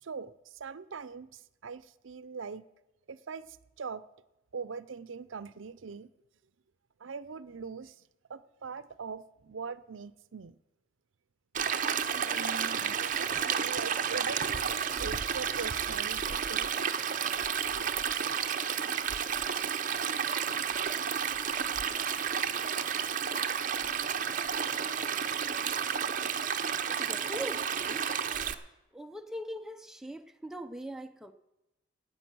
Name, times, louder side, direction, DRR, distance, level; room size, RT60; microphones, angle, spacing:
voice 1, 0.0-2.7 3.1-4.0 4.5-6.1 7.0-8.0 8.3-10.6 12.1-16.7, right 5 dB, 85° right, 16 dB, 0.6 m, -42 dB
Stream, 11.5-28.5, right 7 dB, 40° right, 0.7 m, -31 dB
voice 2, 27.0-28.1 28.9-31.3, equal, ahead, 6 dB, 0.6 m, -41 dB
14.5 x 9.0 x 6.2 m, 0.93 s
head